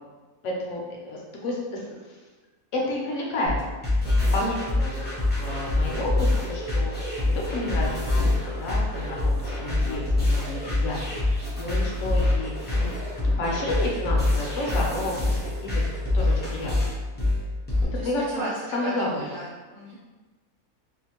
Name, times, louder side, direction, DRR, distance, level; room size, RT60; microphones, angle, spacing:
voice 1, 0.4-2.0 2.7-3.6 4.3-12.5 13.2-15.8 16.1-16.9 17.8-18.4 18.7-19.3, left 1 dB, 65° left, -2 dB, 0.8 m, -31 dB
sound 1, 3.5-17.8, left 2 dB, 15° left, 0.3 m, -25 dB
voice 2, 17.8-20.0, right 2 dB, 90° right, -7 dB, 1.2 m, -36 dB
2.6 x 2.4 x 2.8 m, 1.3 s
omnidirectional pair, 1.6 m